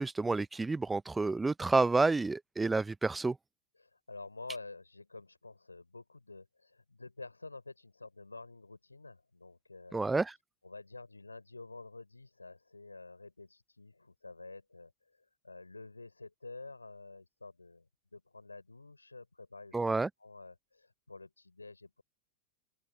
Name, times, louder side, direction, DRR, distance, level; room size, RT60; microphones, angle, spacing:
voice 1, 0.0-3.4 9.9-10.3 19.7-20.1, right 3 dB, 10° right, 0.6 m, -29 dB
voice 2, 3.8-10.2 10.6-14.9 15.4-17.9 18.1-19.8 20.2-22.0, left 3 dB, 80° left, 5.4 m, -49 dB
open air
figure-of-eight pair, 90°, 0 cm